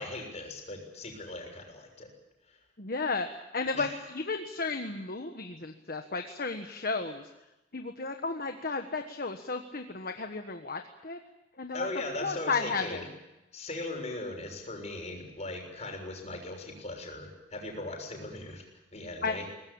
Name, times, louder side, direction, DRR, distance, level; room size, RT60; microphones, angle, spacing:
voice 1, 0.0-2.1 2.5-2.6 3.7-3.9 11.7-13.1 13.5-18.6 18.9-19.5, left 2 dB, 40° left, 2 dB, 6.5 m, -39 dB
voice 2, 2.8-7.3 7.7-11.2 11.6-11.9 12.2-13.0 19.2-19.5, left 4 dB, 55° left, 5 dB, 1.4 m, -33 dB
23.0 x 19.5 x 8.8 m, 0.97 s
head